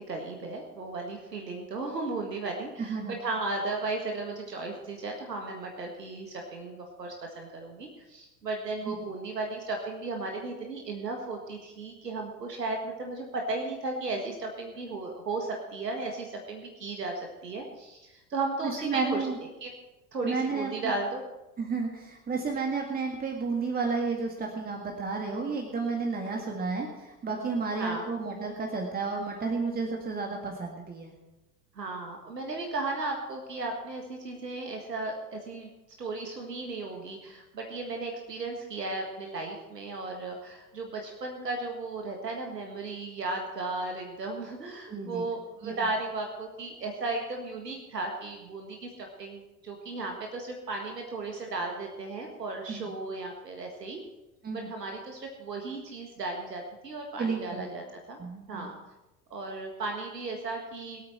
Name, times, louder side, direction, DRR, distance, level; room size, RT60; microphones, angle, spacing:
voice 1, 0.0-19.3 19.6-19.7 20.1-21.2 27.8-28.1 31.8-35.7 36.0-54.0 54.5-58.2 58.5-58.8 59.3-61.0, right 3 dB, 75° right, 2 dB, 1.8 m, -35 dB
voice 2, 2.8-3.1 8.9-9.0 18.6-19.4 20.2-20.9 21.6-31.1 44.9-45.3 45.6-45.7 52.7-52.9 54.4-54.7 57.2-57.7 58.2-58.7, right 4 dB, 20° right, 1 dB, 1.9 m, -32 dB
22.5 x 8.7 x 4.5 m, 1.0 s
figure-of-eight pair, 80°, 48 cm